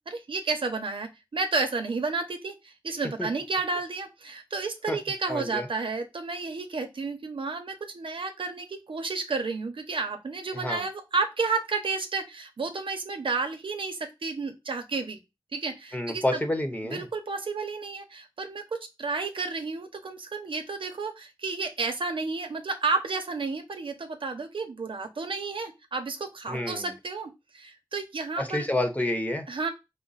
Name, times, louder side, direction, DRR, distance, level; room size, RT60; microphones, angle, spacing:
voice 1, 0.1-15.2 15.5-16.4 16.8-28.8 29.5-29.7, right 4 dB, 90° right, 5 dB, 0.8 m, -31 dB
voice 2, 5.3-5.7 10.5-10.8 15.9-17.1 26.5-26.9 28.4-29.5, left 1 dB, 15° left, 6 dB, 0.9 m, -29 dB
5.0 x 2.1 x 4.0 m, 0.23 s
wide cardioid pair, 75°, 9 cm